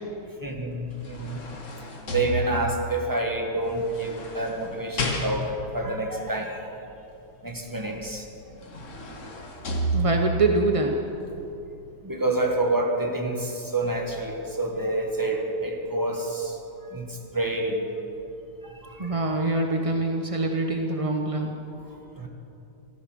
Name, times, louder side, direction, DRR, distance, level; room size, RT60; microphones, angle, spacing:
voice 1, 0.4-1.4 2.1-6.7 7.4-8.3 12.0-17.9 18.6-19.2 21.8-22.3, right 2 dB, 10° right, 2 dB, 1.3 m, -28 dB
sound 1, 0.7-2.9 3.8-5.8 8.0-8.1 8.5-10.5 11.0-11.2, equal, 45° left, 1.7 m, -31 dB
voice 2, 9.9-10.9 19.0-21.5, right 2 dB, 45° right, 3 dB, 0.4 m, -24 dB
14.5 x 14.0 x 6.3 m, 2.8 s
omnidirectional pair, 1.9 m